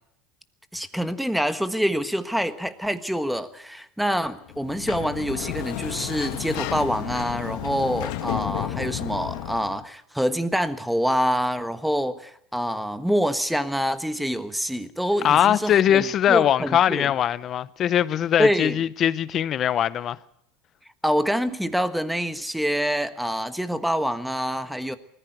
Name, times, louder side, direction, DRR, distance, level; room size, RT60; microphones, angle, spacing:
voice 1, 0.7-17.1 18.4-18.8 21.0-25.0, equal, ahead, 1.4 m, -26 dB
Sliding door, 4.5-9.8, left 13 dB, 70° left, 1.5 m, -32 dB
voice 2, 15.2-20.2, left 10 dB, 45° left, 0.8 m, -21 dB
20.0 x 14.5 x 9.2 m
hypercardioid pair, 95°, 0 cm